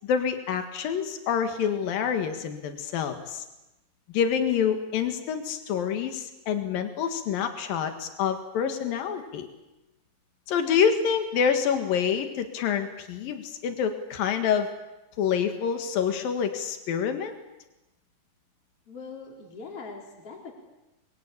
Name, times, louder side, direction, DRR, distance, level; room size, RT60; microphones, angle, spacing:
voice 1, 0.0-3.4 4.1-9.5 10.5-14.7 15.2-17.3, left 7 dB, 85° left, 7 dB, 3.5 m, -27 dB
voice 2, 18.9-20.5, left 4 dB, 40° left, 0 dB, 4.9 m, -41 dB
26.5 x 22.5 x 8.5 m, 0.97 s
omnidirectional pair, 4.0 m